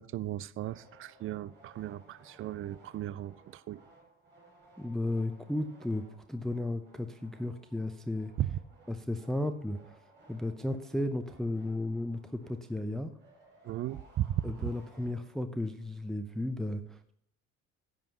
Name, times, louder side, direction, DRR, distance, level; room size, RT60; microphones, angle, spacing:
voice 1, 0.0-3.8 8.4-8.6 13.6-14.7, right 13 dB, 30° right, 0.4 m, -36 dB
sound 1, 0.6-15.6, right 2 dB, 65° right, 4.3 m, -60 dB
voice 2, 4.8-8.3 8.9-10.0 10.3-13.1 14.4-17.1, left 1 dB, ahead, 0.7 m, -34 dB
13.5 x 8.8 x 2.9 m
figure-of-eight pair, 50°, 42 cm